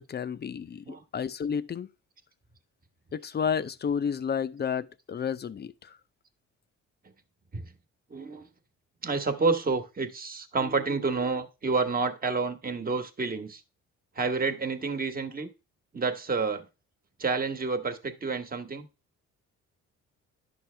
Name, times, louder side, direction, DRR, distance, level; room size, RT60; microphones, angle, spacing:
voice 1, 0.0-1.9 3.1-6.0, left 7 dB, 35° left, 0.6 m, -31 dB
voice 2, 8.1-8.5 9.0-13.6 14.1-15.5 15.9-16.7 17.2-18.9, right 4 dB, 30° right, 1.3 m, -29 dB
10.5 x 6.2 x 3.3 m
cardioid pair, 90°, 30 cm